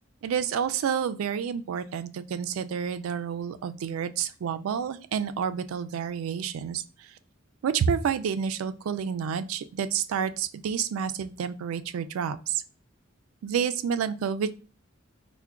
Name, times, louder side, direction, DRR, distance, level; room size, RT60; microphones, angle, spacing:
voice 1, 0.2-6.8 7.6-12.6 13.4-14.5, right 7 dB, 85° right, 11 dB, 0.3 m, -29 dB
5.5 x 2.1 x 2.4 m, 0.37 s
head